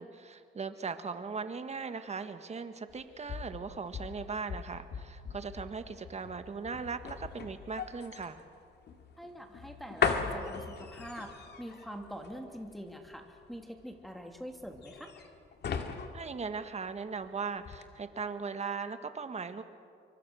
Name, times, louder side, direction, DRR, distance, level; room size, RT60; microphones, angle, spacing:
voice 1, 0.0-8.4 16.1-19.6, right 5 dB, 35° right, 9 dB, 1.6 m, -39 dB
sound 1, 2.9-17.3 17.6-17.8, left 6 dB, 55° left, 2.2 m, -39 dB
voice 2, 9.2-15.1, equal, ahead, 3 dB, 2.7 m, -44 dB
25.0 x 24.0 x 6.4 m, 2.3 s
cardioid pair, 90°, 20 cm